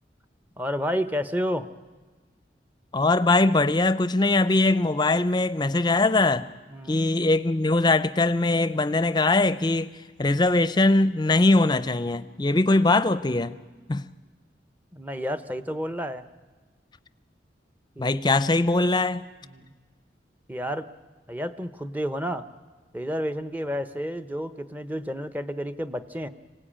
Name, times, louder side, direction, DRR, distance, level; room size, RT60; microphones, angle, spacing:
voice 1, 0.6-1.7 6.7-7.0 14.9-16.2 18.0-18.2 19.4-19.7 20.5-20.9 21.3-22.4 22.9-26.3, equal, 10° right, 0.8 m, -30 dB
voice 2, 2.9-6.5 6.9-9.9 10.2-13.6 13.9-14.0 18.0-19.2, left 2 dB, 25° left, 0.7 m, -21 dB
26.0 x 18.0 x 8.8 m
head